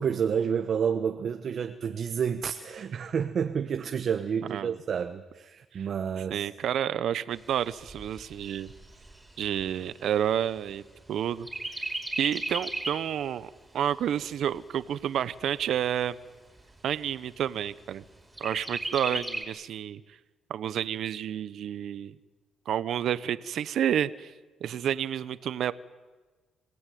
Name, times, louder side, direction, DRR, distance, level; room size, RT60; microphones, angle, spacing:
voice 1, 0.0-6.5, right 7 dB, 55° right, 7 dB, 1.2 m, -29 dB
voice 2, 6.3-8.7 9.4-10.8 11.1-11.5 12.2-16.2 16.8-18.0 18.4-20.0 20.5-22.1 22.7-24.3 24.6-25.7, right 10 dB, 70° right, 15 dB, 0.9 m, -30 dB
Chirp tweet, 7.3-11.1 11.5-13.1 13.6-13.7 14.0-15.0 15.6-15.7 16.0-16.1 16.6-17.1 18.4-19.4, right 2 dB, 15° right, 5.0 m, -36 dB
27.0 x 16.5 x 9.3 m, 1.3 s
cardioid pair, 90°, 0 cm